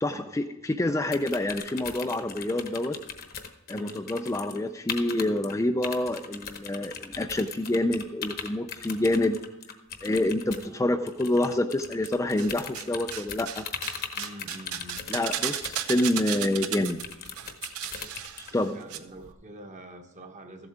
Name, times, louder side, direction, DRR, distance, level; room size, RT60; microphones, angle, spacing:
voice 1, 0.0-3.0 3.7-9.4 10.0-13.7 15.1-17.0 18.5-18.8, left 1 dB, 15° left, 6 dB, 0.4 m, -27 dB
sound 1, 1.1-4.6 4.9-5.5 5.8-18.5, left 6 dB, 45° left, 1.0 m, -39 dB
voice 2, 3.7-4.1 10.4-10.8 14.1-15.0 18.7-20.7, right 1 dB, 35° right, 5 dB, 1.2 m, -45 dB
sound 2, 12.0-12.9 13.1-19.0 19.2-19.3, right 10 dB, 80° right, 0.7 m, -35 dB
14.5 x 7.9 x 3.6 m, 1.0 s
head